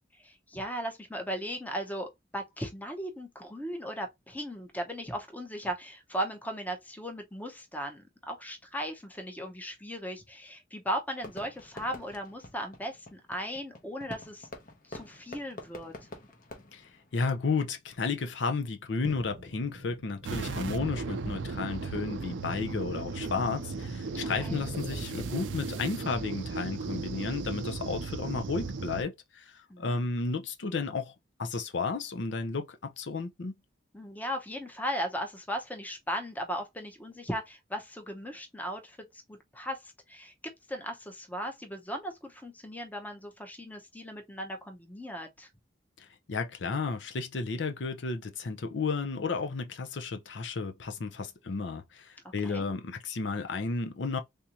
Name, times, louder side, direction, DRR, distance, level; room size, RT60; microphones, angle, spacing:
voice 1, 0.2-14.5 14.8-15.9 24.2-24.7 29.7-30.0 33.9-40.3 40.7-45.5 52.4-52.7, equal, 10° left, 0.7 m, -37 dB
Fireworks, 11.2-17.7, left 2 dB, 45° left, 0.9 m, -48 dB
voice 2, 16.7-31.1 31.4-33.5 46.0-54.2, left 4 dB, 75° left, 0.6 m, -33 dB
sound 1, 19.0-25.8, equal, 40° right, 0.7 m, -45 dB
sound 2, 20.2-29.0, right 4 dB, 85° right, 0.5 m, -36 dB
3.5 x 2.6 x 2.9 m
head